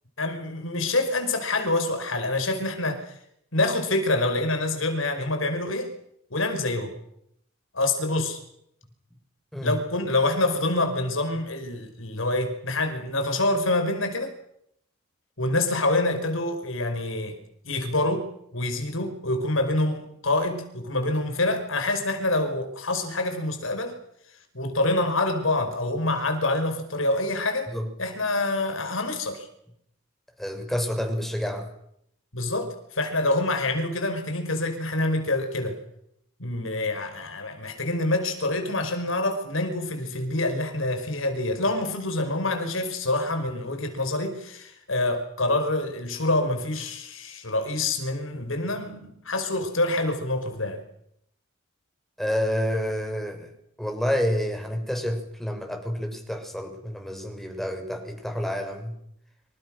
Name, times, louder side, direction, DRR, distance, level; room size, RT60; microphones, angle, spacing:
voice 1, 0.2-3.2 3.5-5.9 6.3-6.9 7.7-8.4 9.6-14.4 15.4-17.4 17.6-18.3 18.5-24.0 24.5-27.7 28.0-29.5 32.3-35.8 36.4-50.8, left 2 dB, 80° left, 7 dB, 5.4 m, -26 dB
voice 2, 30.4-31.7 52.2-53.5 53.8-58.9, equal, ahead, 4 dB, 6.2 m, -29 dB
26.5 x 26.5 x 6.6 m, 0.73 s
head